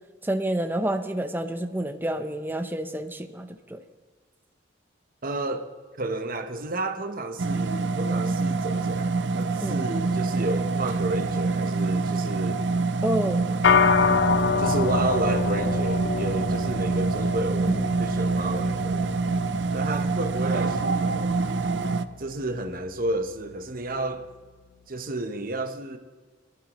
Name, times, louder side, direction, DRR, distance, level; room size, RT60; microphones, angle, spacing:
voice 1, 0.2-3.8 9.6-9.8 13.0-13.5 17.7-17.8, right 1 dB, 10° right, 0.7 m, -28 dB
voice 2, 5.2-5.7 6.0-12.7 14.6-19.2 19.7-21.4 22.2-24.3 24.9-26.0, right 2 dB, 45° right, 0.9 m, -31 dB
sound 1, 7.4-22.0, right 3 dB, 65° right, 0.5 m, -26 dB
sound 2, 13.6-23.2, left 6 dB, 65° left, 0.5 m, -28 dB
21.0 x 12.5 x 3.1 m
head